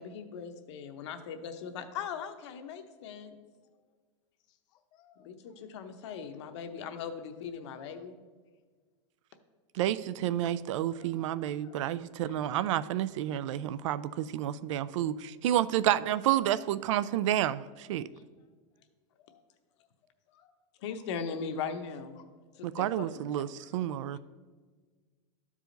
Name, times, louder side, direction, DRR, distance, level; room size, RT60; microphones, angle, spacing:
voice 1, 0.0-3.3 5.2-8.2 20.8-22.2 22.6-23.2, left 6 dB, 65° left, 7 dB, 0.8 m, -39 dB
voice 2, 4.5-5.7 6.1-6.5 7.6-8.0 10.9-11.8 12.3-12.5 18.1-18.2 19.1-19.4 19.8-19.9 20.3-20.5 20.8-21.1 22.2-22.4 22.8-23.9, left 9 dB, 25° left, 5 dB, 0.4 m, -64 dB
voice 3, 9.7-18.0 22.6-24.2, right 12 dB, 75° right, 16 dB, 0.4 m, -30 dB
12.5 x 4.9 x 3.9 m, 1.4 s
supercardioid pair, 165°, 16 cm